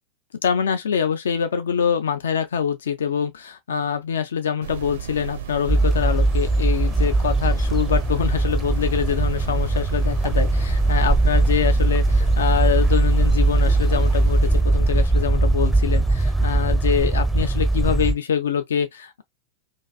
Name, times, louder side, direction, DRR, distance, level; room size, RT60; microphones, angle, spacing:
voice 1, 0.4-19.2, left 8 dB, 65° left, 0.3 m, -25 dB
sound 1, 4.6-14.6, right 10 dB, 60° right, 0.5 m, -34 dB
sound 2, 5.7-18.1, right 2 dB, ahead, 0.4 m, -20 dB
2.5 x 2.3 x 2.2 m
figure-of-eight pair, 90°, 0 cm